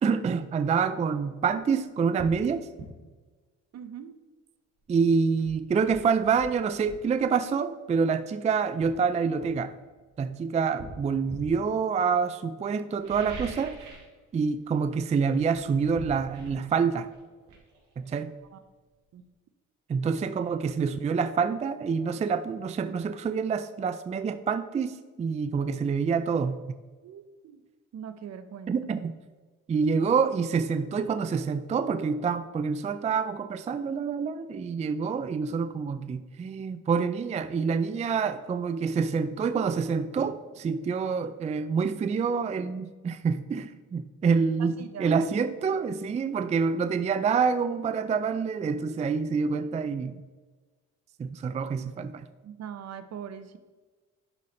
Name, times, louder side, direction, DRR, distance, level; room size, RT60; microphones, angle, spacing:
voice 1, 0.0-2.7 4.9-9.7 10.2-13.8 14.3-17.1 18.0-18.3 19.9-26.6 28.7-29.1 29.7-50.2 51.2-52.3, right 5 dB, 25° right, 11 dB, 0.3 m, -27 dB
sound 1, 2.2-2.4 2.8-3.0 4.9-5.0 5.4-7.1 8.1-8.3 8.8-10.2 10.8-11.6 12.9-14.2 14.4-14.8 15.1-18.7 19.0-19.1, right 3 dB, 85° right, 2.2 m, -44 dB
voice 2, 3.7-4.2 18.5-18.6 19.1-19.2 27.0-27.6 27.9-28.7 44.6-45.1 45.7-45.8 52.4-53.6, right 8 dB, 60° right, 12 dB, 0.7 m, -42 dB
11.0 x 4.2 x 4.2 m, 1.3 s
cardioid pair, 90°, 30 cm